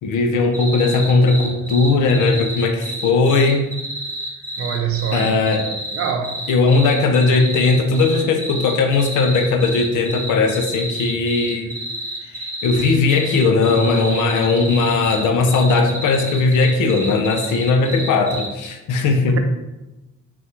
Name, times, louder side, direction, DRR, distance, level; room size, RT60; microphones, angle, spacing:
voice 1, 0.0-3.7 5.1-5.7 6.5-11.7 12.3-19.4, left 3 dB, 80° left, 5 dB, 0.6 m, -18 dB
sound 1, 0.5-18.7, right 1 dB, 5° left, 1.1 m, -30 dB
voice 2, 4.6-5.4 5.9-6.5 19.3-19.4, right 8 dB, 50° right, 4 dB, 0.5 m, -24 dB
4.0 x 2.3 x 4.4 m, 1.0 s
cardioid pair, 90°, 30 cm